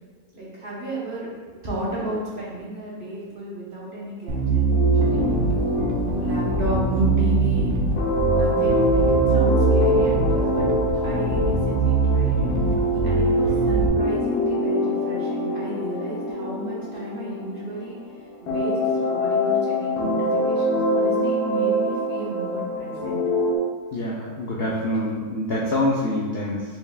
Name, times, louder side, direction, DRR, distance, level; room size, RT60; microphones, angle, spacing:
voice 1, 0.3-4.6 5.1-7.8 8.3-10.7 11.0-12.5 13.0-18.0 18.4-23.2, right 1 dB, 45° right, -7 dB, 0.8 m, -33 dB
Bass guitar, 4.3-13.9, right 3 dB, 70° right, 1.0 m, -23 dB
sound 1, 4.7-18.0 18.5-23.6, equal, 85° left, 1.2 m, -24 dB
voice 2, 23.9-26.8, left 1 dB, 65° left, -4 dB, 0.6 m, -25 dB
4.6 x 3.3 x 2.3 m, 1.5 s
omnidirectional pair, 1.6 m